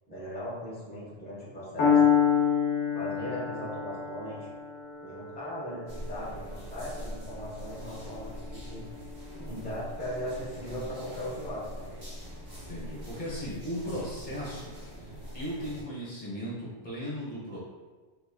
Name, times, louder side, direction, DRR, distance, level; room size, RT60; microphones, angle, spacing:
voice 1, 0.1-2.0 2.9-4.5 5.0-8.9 9.5-11.9, equal, 10° left, -8 dB, 0.9 m, -38 dB
Piano, 1.8-9.7, left 7 dB, 80° left, 1.1 m, -29 dB
sound 1, 5.9-15.8, equal, 20° right, 0.9 m, -43 dB
voice 2, 12.7-17.6, equal, 45° left, -7 dB, 1.2 m, -37 dB
4.2 x 3.1 x 2.3 m, 1.4 s
omnidirectional pair, 1.2 m